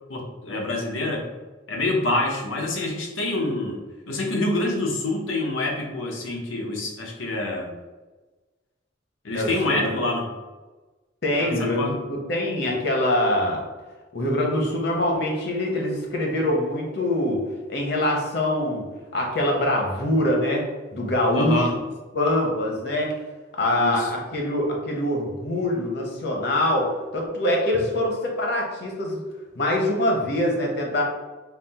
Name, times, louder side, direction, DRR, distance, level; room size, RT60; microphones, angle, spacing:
voice 1, 0.1-1.3 1.7-7.7 9.2-10.3 11.4-12.0 21.3-21.7 23.7-24.1, left 2 dB, 85° left, 0 dB, 0.8 m, -26 dB
voice 2, 9.3-9.9 11.2-13.6 14.1-17.4 17.7-18.8 19.1-20.7 20.9-21.6 22.1-23.1 23.6-29.2 29.5-31.0, left 1 dB, 55° left, 0 dB, 0.9 m, -24 dB
4.2 x 2.0 x 4.1 m, 1.2 s
head